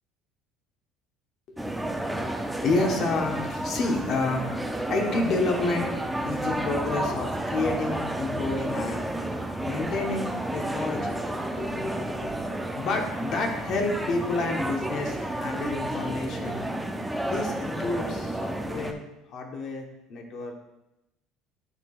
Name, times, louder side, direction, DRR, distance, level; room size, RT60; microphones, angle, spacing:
sound 1, 1.6-18.9, right 1 dB, 5° right, 0.4 m, -31 dB
voice 1, 2.2-4.6 4.9-6.0 6.2-9.0 9.6-16.6 17.2-20.6, left 3 dB, 40° left, 2 dB, 1.1 m, -30 dB
11.0 x 4.6 x 2.4 m, 0.91 s
cardioid pair, 165°, 0 cm